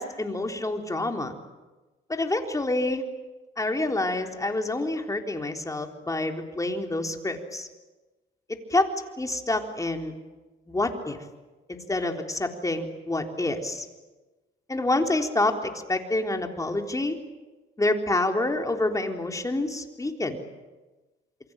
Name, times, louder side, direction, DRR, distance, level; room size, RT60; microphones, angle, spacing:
voice 1, 0.0-1.3 2.1-3.0 3.6-7.7 8.5-8.9 9.2-10.1 10.7-11.2 11.7-13.9 14.7-17.2 17.8-20.4, left 2 dB, 15° left, 3 dB, 3.8 m, -27 dB
28.0 x 24.0 x 9.0 m, 1.2 s
cardioid pair, 90°, 20 cm